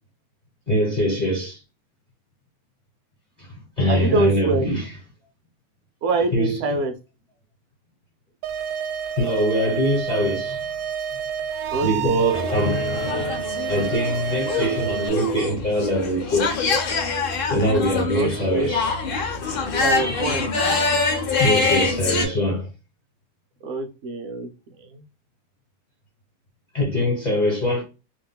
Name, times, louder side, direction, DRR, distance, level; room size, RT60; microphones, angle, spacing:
voice 1, 0.7-1.6 3.4-4.9 6.3-6.6 9.2-10.7 11.8-16.6 17.5-19.0 19.9-20.3 21.4-22.7 26.7-27.8, equal, 35° left, 1.0 m, -23 dB
voice 2, 3.9-4.6 6.0-6.9 11.7-12.2 18.1-18.7 19.8-20.4 23.6-24.5 24.8-25.0, right 3 dB, 65° right, 0.8 m, -25 dB
sound 1, 8.4-15.1, right 8 dB, 90° right, 1.1 m, -29 dB
sound 2, 12.3-22.2, left 4 dB, 60° left, 0.6 m, -25 dB
3.7 x 2.6 x 2.2 m
omnidirectional pair, 1.6 m